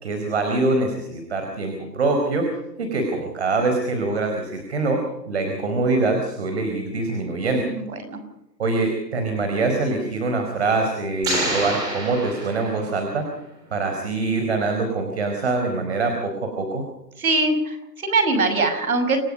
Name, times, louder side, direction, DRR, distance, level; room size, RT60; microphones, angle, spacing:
voice 1, 0.0-2.5 2.8-7.7 8.6-13.3 13.7-16.8, right 3 dB, 40° right, 4 dB, 4.4 m, -24 dB
voice 2, 7.7-8.2 17.2-19.2, right 3 dB, 60° right, 8 dB, 6.3 m, -22 dB
sound 1, 11.2-13.1, right 2 dB, 10° right, 3.0 m, -27 dB
28.0 x 18.5 x 5.4 m, 0.88 s
hypercardioid pair, 180°, 49 cm